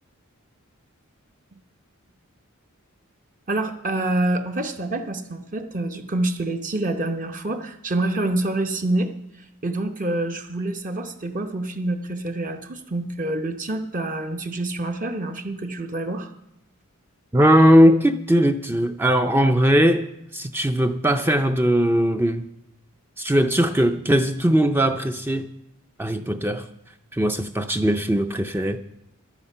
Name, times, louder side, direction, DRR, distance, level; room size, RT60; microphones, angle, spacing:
voice 1, 3.5-9.1 9.4-16.3, right 2 dB, 40° right, 0.9 m, -27 dB
voice 2, 17.3-20.1 20.3-22.4 23.2-25.5 26.0-26.7 27.1-28.8, equal, 10° right, 0.4 m, -19 dB
14.0 x 11.0 x 5.5 m
head